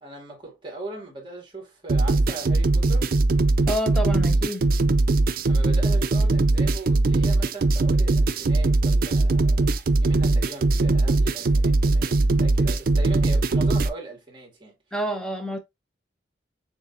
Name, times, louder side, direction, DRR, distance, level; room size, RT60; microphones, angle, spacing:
voice 1, 0.0-3.1 5.5-14.7, right 3 dB, 25° right, 2.2 m, -39 dB
sound 1, 1.9-13.9, right 2 dB, 50° right, 0.4 m, -20 dB
voice 2, 3.7-4.7 14.9-15.6, equal, 5° left, 0.9 m, -28 dB
6.7 x 2.8 x 2.6 m
head